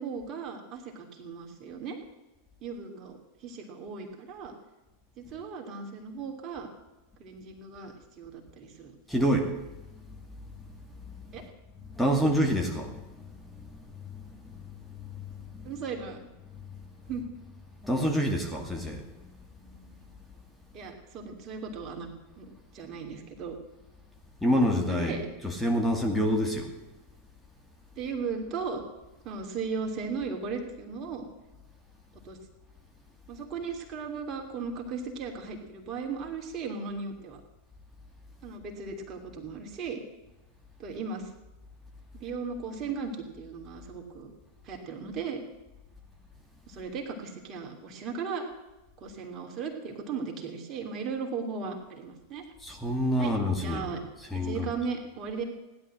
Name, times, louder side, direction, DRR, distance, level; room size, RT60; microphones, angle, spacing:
voice 1, 0.0-2.0 2.6-4.5 5.2-6.7 7.2-8.9 11.3-11.4 15.6-16.2 17.1-17.2 20.7-22.1 22.4-23.6 24.9-25.3 28.0-28.8 29.2-31.2 32.2-32.4 33.3-37.4 38.4-40.0 40.8-41.3 42.1-44.3 44.6-45.4 46.7-48.4 49.0-52.4 53.2-54.0 54.3-55.4, right 5 dB, 35° right, 3 dB, 3.0 m, -37 dB
voice 2, 9.1-9.5 12.0-12.9 14.5-14.6 17.8-19.0 24.4-25.2 25.4-26.7 52.6-53.8 54.3-54.7, equal, 5° left, 1 dB, 2.5 m, -26 dB
16.5 x 11.0 x 7.7 m, 1.0 s
figure-of-eight pair, 90°, 0 cm